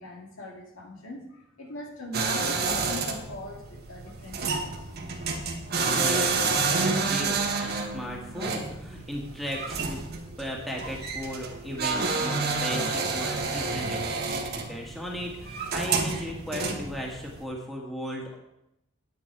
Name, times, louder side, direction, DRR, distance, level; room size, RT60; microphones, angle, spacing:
voice 1, 0.0-4.9, left 1 dB, 85° left, 0 dB, 2.4 m, -40 dB
sound 1, 2.1-17.4, right 4 dB, 50° right, 1.4 m, -29 dB
voice 2, 6.0-10.1 10.4-18.4, equal, ahead, -2 dB, 1.9 m, -36 dB
9.5 x 9.4 x 4.7 m, 0.84 s
head